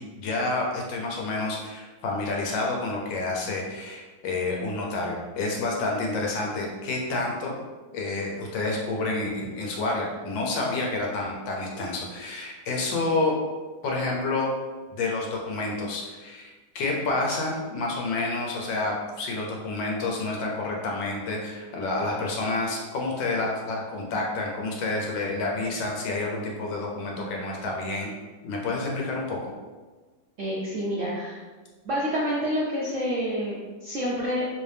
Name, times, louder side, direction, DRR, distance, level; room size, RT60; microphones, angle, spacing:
voice 1, 0.0-7.5 7.9-13.3 13.8-14.5 14.9-28.1 28.4-29.5, left 2 dB, 90° left, -1 dB, 1.5 m, -29 dB
voice 2, 30.4-31.4 31.8-34.4, equal, 70° right, -6 dB, 0.7 m, -28 dB
3.4 x 2.7 x 3.3 m, 1.3 s
omnidirectional pair, 2.0 m